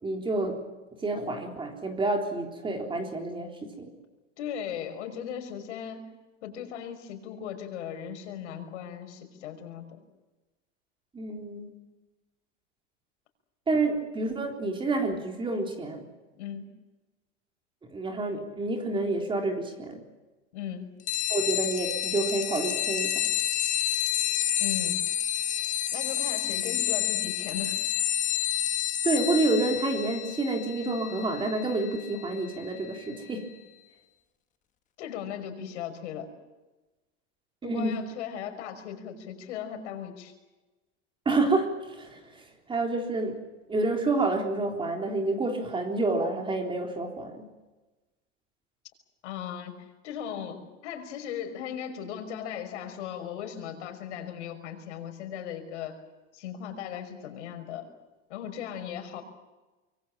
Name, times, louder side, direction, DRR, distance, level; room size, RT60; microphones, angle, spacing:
voice 1, 0.0-0.6 1.0-3.9 11.1-11.7 13.7-16.0 17.8-20.0 21.3-23.2 29.0-33.5 37.6-37.9 41.3-42.4 42.7-43.4 43.7-47.4, right 2 dB, 15° right, 3 dB, 3.7 m, -28 dB
voice 2, 4.4-6.1 6.4-10.0 16.4-16.7 20.5-20.9 24.6-25.1 25.9-27.8 35.0-36.3 37.6-40.3 49.2-56.0 56.3-57.9 58.3-59.2, left 9 dB, 65° left, 7 dB, 5.8 m, -37 dB
sound 1, 21.1-33.2, left 12 dB, 20° left, 1.1 m, -30 dB
25.0 x 24.0 x 7.4 m, 1.1 s
supercardioid pair, 140°, 37 cm